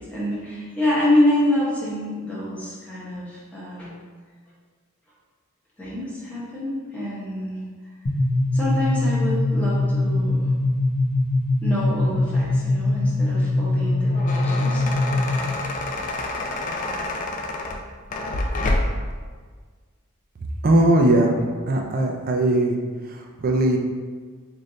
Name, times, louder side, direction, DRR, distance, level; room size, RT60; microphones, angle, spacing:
voice 1, 0.0-3.9 5.8-7.6 8.5-10.5 11.6-14.9, left 1 dB, 5° left, -9 dB, 1.0 m, -26 dB
sound 1, 8.1-15.6, left 2 dB, 70° left, 0.7 m, -22 dB
sound 2, 13.9-19.1, left 2 dB, 35° left, 0.3 m, -28 dB
voice 2, 20.6-21.4 21.7-22.8 23.1-23.8, right 1 dB, 40° right, 2 dB, 0.4 m, -19 dB
3.2 x 2.6 x 3.9 m, 1.5 s
head